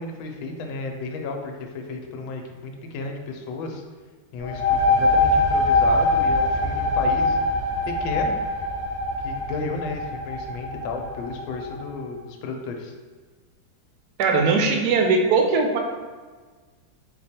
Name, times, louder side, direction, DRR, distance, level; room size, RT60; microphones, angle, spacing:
voice 1, 0.0-3.8 4.3-7.4 7.9-8.4 9.2-12.9, left 3 dB, 85° left, 3 dB, 1.4 m, -33 dB
sound 1, 4.4-11.8, left 2 dB, 40° left, 1.0 m, -23 dB
voice 2, 14.2-15.8, right 4 dB, 75° right, 3 dB, 0.9 m, -20 dB
4.9 x 2.2 x 4.2 m, 1.4 s
omnidirectional pair, 2.1 m